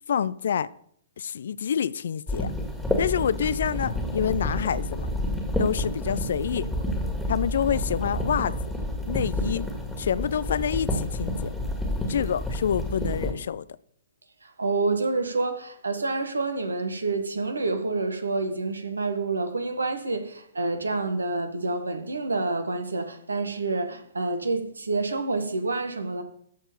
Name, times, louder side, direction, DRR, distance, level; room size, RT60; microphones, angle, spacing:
voice 1, 0.1-0.7 1.2-2.5 3.0-5.1 5.6-6.7 7.3-8.5 9.1-9.6 10.0-11.5 12.1-13.7, left 8 dB, 60° left, 0.4 m, -27 dB
sound 1, 2.3-13.3, left 1 dB, 5° left, 2.0 m, -29 dB
voice 2, 14.4-26.2, right 3 dB, 75° right, 1.5 m, -28 dB
13.0 x 4.4 x 6.9 m
figure-of-eight pair, 115°, 0 cm